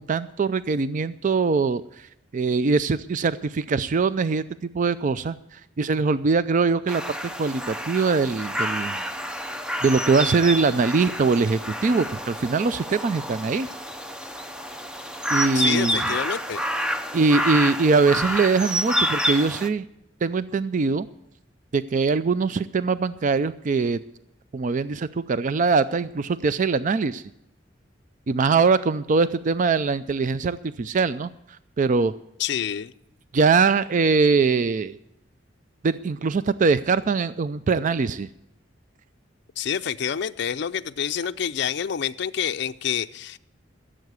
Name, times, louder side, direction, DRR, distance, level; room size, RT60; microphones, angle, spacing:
voice 1, 0.0-2.1 2.3-7.0 7.4-9.0 9.8-13.7 15.3-16.0 17.1-19.9 20.2-21.1 21.7-24.0 24.5-27.2 28.3-31.3 31.8-32.1 33.3-35.0 35.8-38.3, right 4 dB, 45° right, 14 dB, 0.4 m, -22 dB
sound 1, 6.9-19.7, equal, 5° right, 0.7 m, -28 dB
voice 2, 15.5-16.6 32.4-32.9 39.6-43.4, left 8 dB, 65° left, 9 dB, 0.4 m, -28 dB
15.5 x 7.6 x 8.1 m, 0.82 s
head